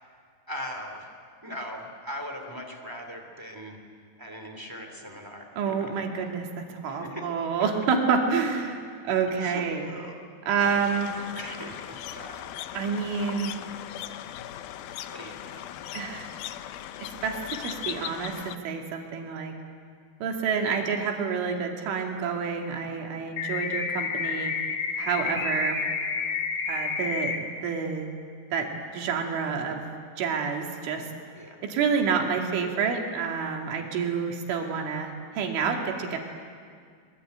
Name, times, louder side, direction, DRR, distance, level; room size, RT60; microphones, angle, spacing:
voice 1, 0.5-1.1 1.4-3.8 4.2-5.9 6.9-7.5 9.4-10.2 11.3-12.4 15.1-15.6 25.2-25.5 31.3-31.6 34.5-34.8, equal, 10° right, 3 dB, 1.0 m, -40 dB
voice 2, 5.6-8.8 9.0-9.9 10.5-11.1 12.7-13.5 15.9-16.3 17.2-19.5 20.2-24.5 25.0-25.8 26.7-27.4 27.6-28.1 28.5-29.9 30.2-31.1 31.6-36.2, right 6 dB, 85° right, 2 dB, 4.9 m, -28 dB
sound 1, 10.6-18.6, left 11 dB, 85° left, 2.1 m, -39 dB
sound 2, 23.4-27.4, left 5 dB, 50° left, 3.0 m, -30 dB
24.0 x 22.5 x 9.3 m, 2.1 s
omnidirectional pair, 5.4 m